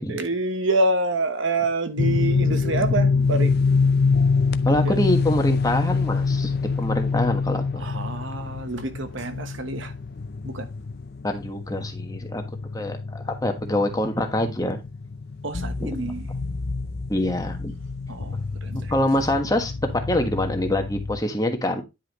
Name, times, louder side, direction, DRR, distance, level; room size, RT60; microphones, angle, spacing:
voice 1, 0.0-3.5 4.8-5.0 7.8-9.9 10.4-10.7 15.4-16.3 18.1-18.9, right 2 dB, 60° right, 1.1 m, -27 dB
sound 1, 2.0-21.2, left 4 dB, 50° left, 0.5 m, -25 dB
voice 2, 4.6-7.9 11.2-12.4 12.7-14.8 15.8-16.0 17.1-17.7 18.7-19.7 20.1-21.8, left 1 dB, 15° left, 1.3 m, -25 dB
10.0 x 5.7 x 3.0 m
head